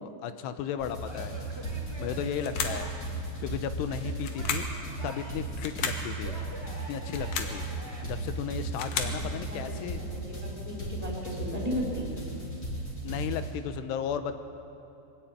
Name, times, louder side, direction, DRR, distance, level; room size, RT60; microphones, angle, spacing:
voice 1, 0.0-1.3 2.0-2.9 3.4-4.7 5.0-6.3 6.9-7.6 8.0-10.0 13.0-14.4, left 9 dB, 80° left, 10 dB, 2.8 m, -35 dB
sound 1, 0.8-13.5, right 2 dB, 25° left, 3.5 m, -36 dB
Male speech man speaking / Yell / Laughter, 1.0-3.1 3.8-5.5 6.2-8.0, equal, 35° right, 0.4 m, -46 dB
sound 2, 2.4-2.9 4.2-4.8 5.6-6.1 7.0-7.6 8.5-9.2, left 6 dB, 65° left, 2.3 m, -33 dB
voice 2, 9.5-12.1, left 1 dB, 10° right, -3 dB, 3.8 m, -36 dB
22.5 x 13.5 x 8.7 m, 2.8 s
omnidirectional pair, 5.0 m